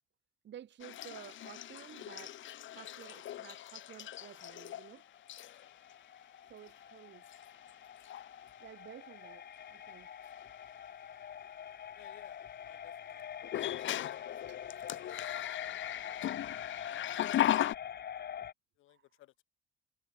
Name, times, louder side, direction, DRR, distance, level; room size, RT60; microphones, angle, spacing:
voice 1, 0.4-2.4 2.7-5.0 6.4-7.2 8.6-10.1 13.7-13.9 14.5-14.6 15.9-16.0 18.9-19.1, right 10 dB, 65° right, 2.8 m, -53 dB
sound 1, 0.8-4.9 5.3-5.7 6.7-6.8 7.3-7.7 8.0-8.3 10.3-10.4 13.4-17.7, left 12 dB, 75° left, 2.2 m, -37 dB
sound 2, 3.8-18.5, left 9 dB, 55° left, 1.5 m, -46 dB
voice 2, 12.0-13.2 13.6-13.8 16.8-17.2 18.8-19.3, left 16 dB, 90° left, 1.7 m, -59 dB
cardioid pair, 90°, 20 cm